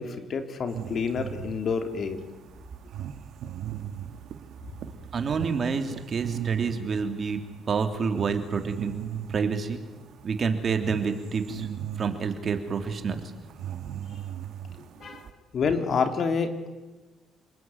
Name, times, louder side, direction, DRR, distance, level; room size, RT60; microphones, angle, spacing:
voice 1, 0.0-2.2 15.0-15.3 15.5-16.7, left 5 dB, 50° left, 7 dB, 3.5 m, -28 dB
sound 1, 0.7-9.4 9.7-15.3, right 10 dB, 70° right, 2.0 m, -38 dB
voice 2, 5.1-7.4 7.7-9.0 9.3-9.8 10.2-11.7 12.0-13.2, right 5 dB, 45° right, 7 dB, 3.3 m, -28 dB
29.0 x 20.0 x 9.4 m, 1.2 s
cardioid pair, 100°, 0 cm